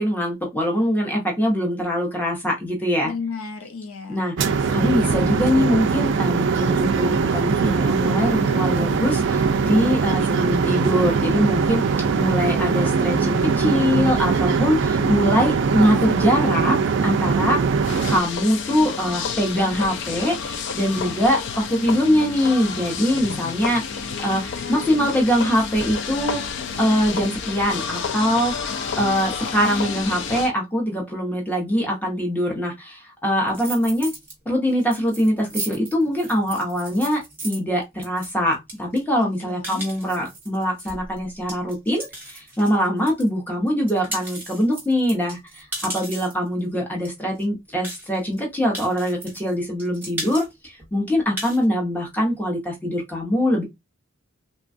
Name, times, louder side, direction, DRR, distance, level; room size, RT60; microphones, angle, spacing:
voice 1, 0.0-3.1 4.1-4.3 4.7-9.2 9.6-11.8 12.2-16.8 17.0-17.6 18.1-20.3 20.7-23.8 24.2-24.4 24.7-26.4 26.8-28.5 29.0-32.7 33.2-34.1 34.5-42.0 42.6-45.4 45.8-50.4 50.9-53.6, equal, 10° left, 0.7 m, -22 dB
voice 2, 3.0-4.3 15.0-16.1 24.0-25.1 39.2-39.8, left 4 dB, 70° left, 0.7 m, -35 dB
sound 1, 4.4-18.2, right 5 dB, 50° right, 0.3 m, -21 dB
movie courtyard escalater, 17.8-30.5, left 6 dB, 50° left, 0.3 m, -30 dB
sound 2, 33.5-34.3 34.7-43.3 43.7-46.5 47.1-47.2 47.4-47.5 47.8-48.4 48.7-49.5 49.8-50.5 50.8-50.9 51.2-51.6, right 2 dB, 10° right, 1.0 m, -35 dB
3.2 x 2.2 x 2.5 m
head